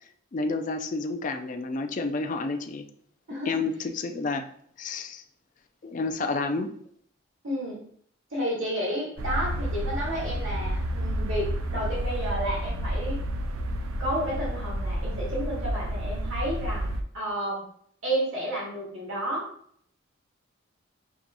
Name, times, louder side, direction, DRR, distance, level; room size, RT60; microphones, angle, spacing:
voice 1, 0.3-2.8 3.5-4.5 4.8-5.2 5.8-6.7, left 3 dB, 35° left, 6 dB, 0.3 m, -30 dB
voice 2, 3.3-3.6 7.4-7.8 8.3-13.2 14.0-16.9 17.1-17.6 18.0-19.5, equal, 65° right, -5 dB, 1.4 m, -31 dB
sound 1, 9.2-17.0, right 1 dB, 85° right, 0.5 m, -30 dB
6.0 x 2.8 x 2.5 m, 0.63 s
head